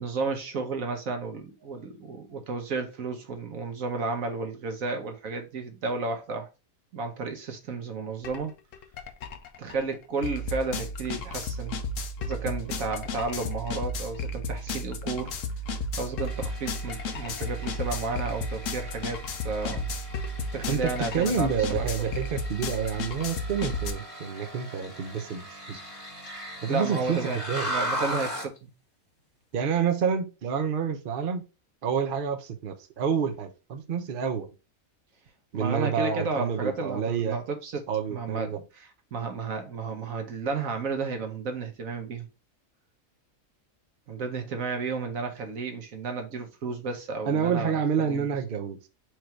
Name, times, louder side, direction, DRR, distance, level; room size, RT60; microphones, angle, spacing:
voice 1, 0.0-6.5 6.9-8.5 9.6-11.8 12.2-15.4 16.0-19.9 20.5-21.9 26.7-28.6 35.5-37.8 38.1-42.3 44.1-48.3, right 4 dB, 70° right, 1.3 m, -32 dB
sound 1, 8.2-8.4 8.7-23.9, left 2 dB, 65° left, 1.0 m, -33 dB
sound 2, 16.2-28.6, equal, 25° left, 1.6 m, -38 dB
voice 2, 20.7-25.8 26.6-27.7 29.5-31.5 31.8-34.5 35.5-37.4 37.9-38.6 47.3-48.8, right 7 dB, 50° right, 0.7 m, -28 dB
4.6 x 2.6 x 4.4 m
omnidirectional pair, 1.5 m